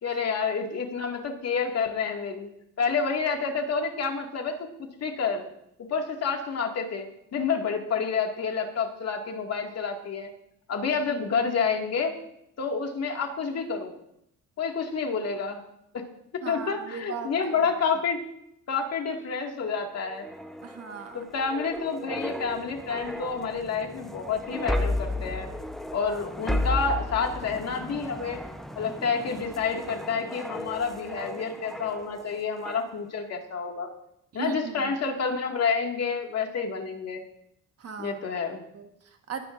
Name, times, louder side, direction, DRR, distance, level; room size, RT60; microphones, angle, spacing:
voice 1, 0.0-2.5 2.8-5.4 5.9-10.3 10.7-12.1 12.6-13.9 14.6-15.6 15.9-16.0 16.3-18.2 18.7-20.3 21.1-25.5 25.9-28.4 28.8-33.9 34.3-37.2 38.0-38.6, left 5 dB, 55° left, 2 dB, 2.2 m, -29 dB
voice 2, 16.4-17.7 20.6-21.3 28.0-28.1 34.3-34.9 37.8-38.2 38.7-39.4, right 6 dB, 55° right, 5 dB, 1.5 m, -38 dB
sound 1, 20.0-32.3 32.7-32.9, left 1 dB, ahead, 0.9 m, -34 dB
19.5 x 9.8 x 2.6 m, 0.78 s
cardioid pair, 90°, 30 cm